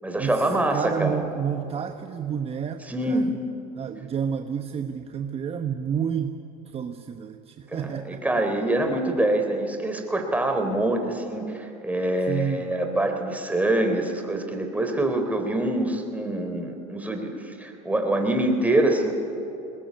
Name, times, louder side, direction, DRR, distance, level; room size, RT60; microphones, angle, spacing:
voice 1, 0.0-1.2 2.9-3.3 7.7-19.1, right 1 dB, 5° right, 5 dB, 3.6 m, -25 dB
voice 2, 0.7-3.3 3.7-6.4 6.7-8.2 12.3-12.7, right 7 dB, 30° right, 7 dB, 1.1 m, -30 dB
21.0 x 20.5 x 9.6 m, 3.0 s
supercardioid pair, 100°, 20 cm